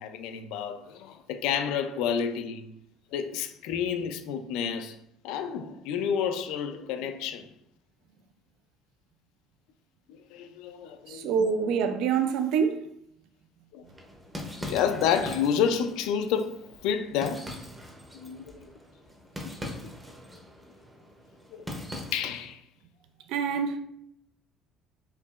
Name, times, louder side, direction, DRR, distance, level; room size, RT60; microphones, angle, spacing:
voice 1, 0.0-2.7 3.1-5.0 5.2-7.5 10.1-11.3 13.7-13.8 14.6-17.5 18.1-18.7 19.4-19.9 21.5-21.6 22.1-22.6, left 7 dB, 85° left, 0.4 m, -30 dB
voice 2, 11.1-12.9 23.3-23.8, right 6 dB, 70° right, 0.3 m, -26 dB
sound 1, 13.9-22.5, left 1 dB, 10° right, 0.6 m, -42 dB
4.5 x 2.8 x 2.4 m
cardioid pair, 160°, 0 cm